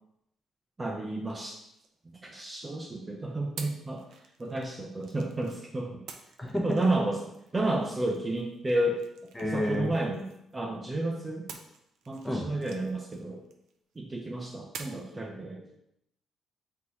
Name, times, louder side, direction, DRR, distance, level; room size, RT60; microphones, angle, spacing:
voice 1, 0.8-1.6 2.2-4.1 4.4-6.0 6.4-7.2 7.5-9.0 9.5-10.2 10.5-11.5 12.1-13.4 14.0-15.6, right 2 dB, 25° right, -1 dB, 0.5 m, -31 dB
sound 1, 1.2-2.7 3.6-5.6 6.1-10.8 11.5-14.0 14.7-15.2, right 6 dB, 85° right, 0.4 m, -50 dB
voice 2, 9.4-9.9 12.2-12.5 15.4-15.8, left 1 dB, 10° left, -1 dB, 0.9 m, -31 dB
3.8 x 2.9 x 3.0 m, 0.78 s
cardioid pair, 90°, 0 cm